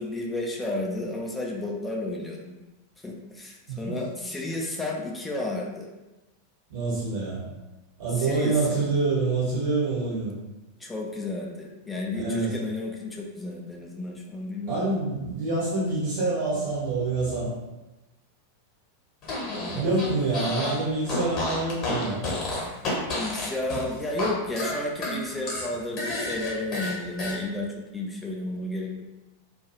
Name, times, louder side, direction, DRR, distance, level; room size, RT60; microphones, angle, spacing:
voice 1, 0.0-2.5 3.0-5.9 8.2-8.9 10.8-14.9 19.5-20.0 23.1-27.7 27.9-29.0, left 2 dB, 10° left, -1 dB, 0.4 m, -32 dB
voice 2, 6.7-7.4 8.0-10.3 12.1-12.5 14.7-17.5 19.7-22.2, right 3 dB, 60° right, -8 dB, 1.1 m, -26 dB
Fart, 19.2-20.8 21.0-24.3 24.6-27.4, left 2 dB, 35° left, 1.0 m, -31 dB
2.3 x 2.3 x 3.0 m, 1.0 s
figure-of-eight pair, 90°, 0 cm